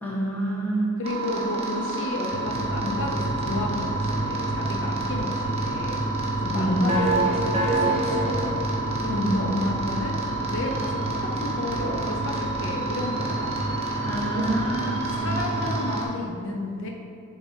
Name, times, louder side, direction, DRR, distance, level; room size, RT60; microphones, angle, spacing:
voice 1, 0.0-0.9 6.5-6.9 9.1-9.5 14.0-15.3, right 1 dB, 10° left, -6 dB, 1.4 m, -26 dB
voice 2, 1.0-6.0 6.4-8.6 9.0-10.2 10.5-13.7 14.3-14.6 15.1-16.9, left 2 dB, 60° left, 1 dB, 0.6 m, -33 dB
sound 1, 1.0-16.0, right 2 dB, 30° right, 1.1 m, -28 dB
sound 2, 2.3-15.8, right 1 dB, 50° right, 0.6 m, -32 dB
7.1 x 3.9 x 5.2 m, 2.6 s
head